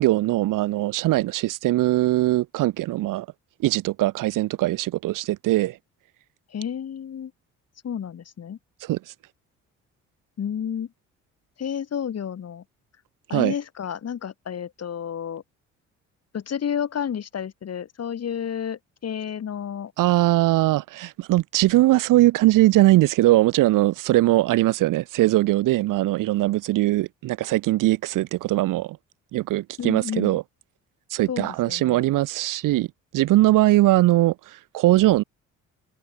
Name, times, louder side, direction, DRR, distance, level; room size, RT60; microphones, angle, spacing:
voice 1, 0.0-3.3 3.6-5.8 8.8-9.0 13.3-13.5 20.0-29.0 29.3-30.4 31.1-32.9 33.1-35.2, right 17 dB, 75° right, 1.0 m, -20 dB
voice 2, 6.5-7.3 7.8-8.6 10.4-10.9 11.6-12.6 13.3-15.4 16.3-19.9 29.8-30.4 31.3-32.1, left 8 dB, 50° left, 3.0 m, -31 dB
supercardioid pair, 70°, 33 cm